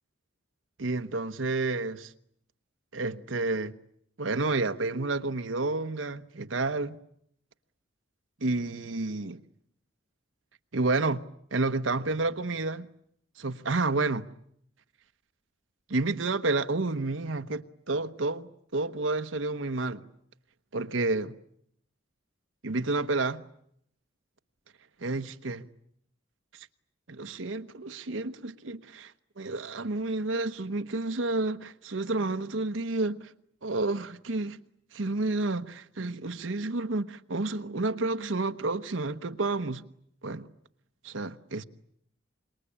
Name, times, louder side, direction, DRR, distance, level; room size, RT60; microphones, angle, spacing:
voice 1, 0.8-2.1 2.9-3.7 4.2-7.0 8.4-9.4 10.7-11.2 11.5-12.9 13.4-14.3 15.9-20.0 20.7-21.4 22.6-23.4 25.0-25.7 26.5-26.7 27.1-33.3 33.6-34.6 34.9-39.8 40.2-40.5 41.0-41.6, right 3 dB, 75° right, 1.1 m, -30 dB
26.5 x 22.0 x 9.9 m
head